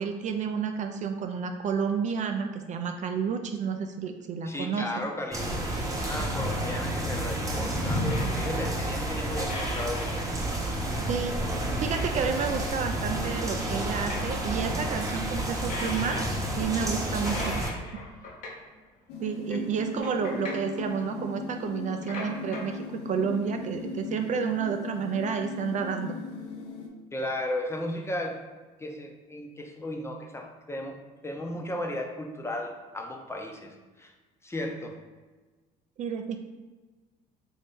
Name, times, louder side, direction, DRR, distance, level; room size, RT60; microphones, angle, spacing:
voice 1, 0.0-4.9 11.1-11.4 11.8-16.2 16.6-17.6 19.2-26.2 36.0-36.4, right 6 dB, 45° right, 6 dB, 0.4 m, -30 dB
voice 2, 4.5-10.3 19.5-19.6 27.1-28.4 28.8-31.0 31.2-34.1 34.4-35.0, left 1 dB, 15° left, 2 dB, 0.6 m, -35 dB
sound 1, 5.3-17.7, right 1 dB, 20° right, 0.8 m, -30 dB
sound 2, 7.2-7.3 8.1-9.0 9.4-10.3 10.7-10.8 11.0-11.1 11.5-12.4 12.7-12.8 13.0-13.1 13.3-14.6 15.7-16.6 17.1-18.8 19.3-19.4 19.7-20.9 21.9-22.8 23.3-23.4 23.6-23.7, left 2 dB, 50° left, 1.0 m, -40 dB
sound 3, 19.1-26.9, left 4 dB, 70° left, 0.6 m, -38 dB
3.2 x 2.7 x 3.5 m, 1.3 s
supercardioid pair, 80°, 18 cm